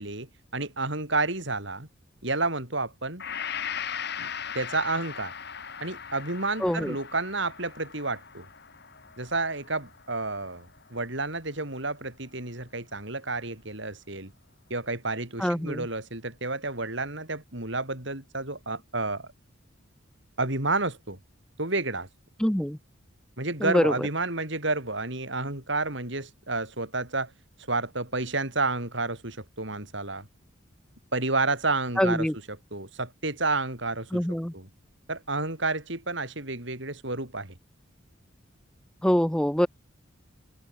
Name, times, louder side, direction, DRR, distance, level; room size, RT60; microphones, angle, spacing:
voice 1, 0.0-1.9 2.2-3.2 4.2-4.3 4.6-5.3 5.8-8.5 9.2-14.3 14.7-19.3 20.4-21.2 21.6-22.1 23.4-27.3 27.7-30.3 31.1-32.3 32.7-34.2 34.5-34.7 35.1-37.5, right 3 dB, 60° right, 5.2 m, -30 dB
Gong, 3.2-11.2, left 7 dB, 50° left, 2.6 m, -39 dB
voice 2, 6.6-7.0 15.4-15.9 22.4-22.8 23.6-24.1 32.0-32.3 34.1-34.5 39.0-39.7, equal, 5° left, 0.5 m, -24 dB
open air
head